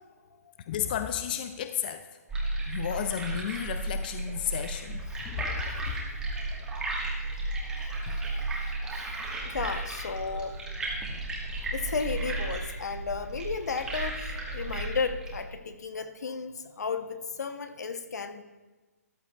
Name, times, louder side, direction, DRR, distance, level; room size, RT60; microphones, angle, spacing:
voice 1, 0.0-0.5 2.4-2.5 5.1-5.2 7.0-11.2 11.6-18.4, left 5 dB, 75° left, 9 dB, 0.9 m, -35 dB
voice 2, 0.7-2.1 2.7-5.5 5.8-5.9 8.1-8.2, left 10 dB, 35° left, 9 dB, 0.4 m, -33 dB
sound 1, 2.3-15.4, right 2 dB, 5° right, 1.4 m, -34 dB
13.5 x 10.5 x 2.3 m, 1.2 s
hypercardioid pair, 155°, 9 cm